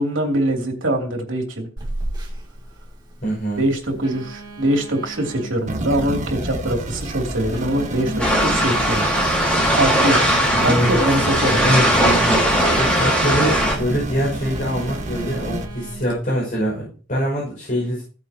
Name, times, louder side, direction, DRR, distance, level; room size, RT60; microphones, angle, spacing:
voice 1, 0.0-1.7 3.6-9.1 9.5-10.3 10.6-11.8, right 1 dB, 80° right, 2 dB, 3.1 m, -23 dB
Telephone, 1.8-16.1, right 2 dB, 25° right, 2.9 m, -38 dB
voice 2, 3.2-3.6 10.6-10.9 11.6-12.3 12.7-18.0, equal, 45° left, -5 dB, 6.1 m, -23 dB
sound 1, 5.7-15.7, right 1 dB, 40° right, 1.6 m, -29 dB
sound 2, 8.2-13.7, equal, 5° left, 4.6 m, -19 dB
17.0 x 8.6 x 3.0 m, 0.38 s
head